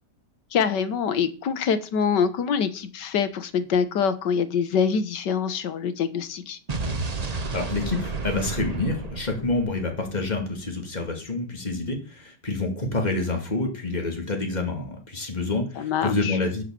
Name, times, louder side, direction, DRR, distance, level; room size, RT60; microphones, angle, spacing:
voice 1, 0.5-6.6 15.8-16.3, left 6 dB, 90° left, 11 dB, 1.7 m, -25 dB
Explosion, 6.7-10.8, right 3 dB, 30° right, 0.9 m, -32 dB
voice 2, 7.5-16.6, left 3 dB, 25° left, 2 dB, 2.5 m, -28 dB
11.0 x 5.6 x 7.6 m, 0.37 s
omnidirectional pair, 1.8 m